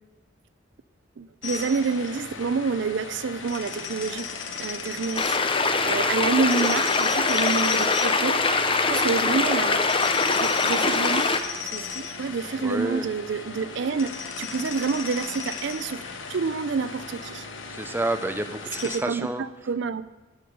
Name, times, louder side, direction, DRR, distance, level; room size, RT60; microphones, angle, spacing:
voice 1, 1.2-4.3 4.6-9.9 10.3-11.3 11.7-14.1 14.4-16.0 16.3-17.5 18.8-20.0, right 5 dB, 65° right, 14 dB, 0.4 m, -28 dB
sound 1, 1.4-19.0, left 5 dB, 85° left, 1.1 m, -36 dB
sound 2, 5.2-11.4, left 4 dB, 30° left, 0.7 m, -23 dB
voice 2, 12.6-13.1 17.7-19.7, right 2 dB, 10° right, 8 dB, 0.5 m, -30 dB
16.0 x 5.4 x 6.6 m, 1.1 s
head